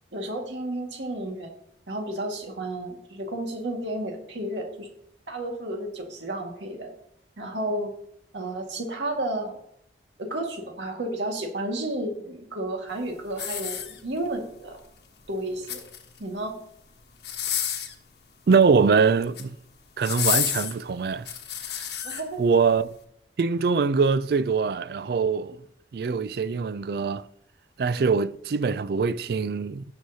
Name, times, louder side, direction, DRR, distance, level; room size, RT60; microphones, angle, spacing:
voice 1, 0.1-1.5 1.9-4.9 5.3-6.9 7.4-7.9 8.3-9.6 10.2-14.8 15.3-15.8 16.2-16.5 22.0-22.4 28.0-28.1, right 1 dB, 90° right, 1.9 m, -32 dB
sound 1, 13.3-14.3 15.4-16.2 17.2-18.0 19.1-19.5 20.0-22.2 22.8-22.9, left 9 dB, 70° left, 1.2 m, -30 dB
voice 2, 18.5-19.5 20.0-21.3 22.4-22.9 23.4-25.6 25.9-27.2 27.8-29.8, right 5 dB, 55° right, 0.3 m, -23 dB
18.0 x 6.3 x 2.8 m
head